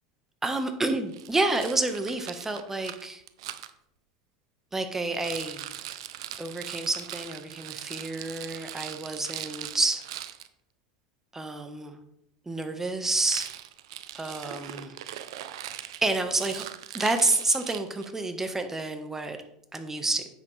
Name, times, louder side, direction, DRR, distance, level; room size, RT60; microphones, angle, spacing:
voice 1, 0.4-3.2 4.7-5.7 6.4-10.0 11.3-12.0 12.4-13.5 14.1-14.9 16.0-16.6 16.9-19.4 19.7-20.3, right 2 dB, 15° right, 7 dB, 1.4 m, -29 dB
Rattle, 1.1-3.7 5.1-10.5 13.2-18.2, right 12 dB, 75° right, 0.6 m, -40 dB
9.7 x 7.4 x 3.4 m, 0.76 s
hypercardioid pair, 85°, 3 cm